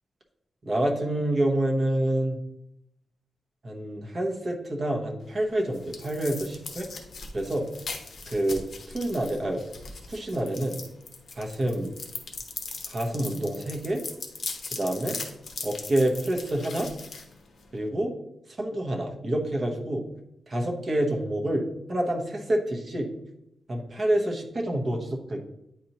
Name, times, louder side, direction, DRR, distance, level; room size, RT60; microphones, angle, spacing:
voice 1, 0.6-2.4 3.6-6.9 7.3-7.7 8.3-8.6 8.9-9.6 10.1-10.8 11.3-11.9 12.9-14.0 14.7-15.2 15.6-16.9 17.7-18.1 18.5-20.0 20.5-23.1 23.7-25.4, right 1 dB, 30° right, 1 dB, 0.9 m, -27 dB
sound 1, 5.2-17.9, left 4 dB, 50° left, 0.9 m, -40 dB
9.2 x 4.1 x 2.9 m, 0.83 s
wide cardioid pair, 175°, 0 cm